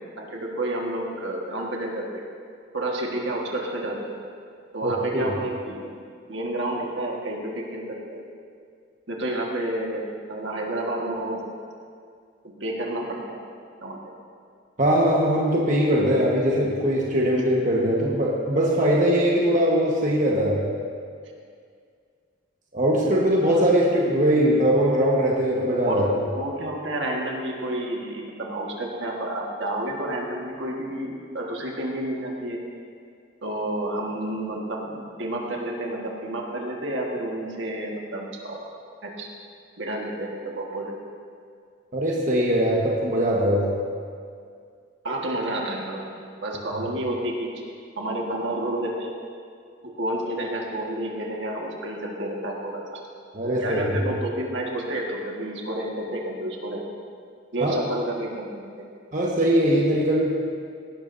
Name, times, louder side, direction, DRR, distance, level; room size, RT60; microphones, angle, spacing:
voice 1, 0.2-2.2 2.7-4.2 4.7-5.9 6.3-8.2 9.1-11.4 12.4-13.4 13.8-14.0 25.9-32.6 33.4-38.7 39.0-39.3 39.8-40.9 45.0-46.1 46.4-47.7 47.9-49.1 49.8-53.0 53.4-56.8 57.5-58.9, right 1 dB, 65° right, -1 dB, 1.6 m, -30 dB
voice 2, 4.8-5.3 14.8-20.6 22.7-26.0 41.9-43.7 53.3-54.0 57.6-57.8 59.1-60.2, equal, 40° right, -4 dB, 1.3 m, -21 dB
18.0 x 12.0 x 2.7 m, 2.2 s
head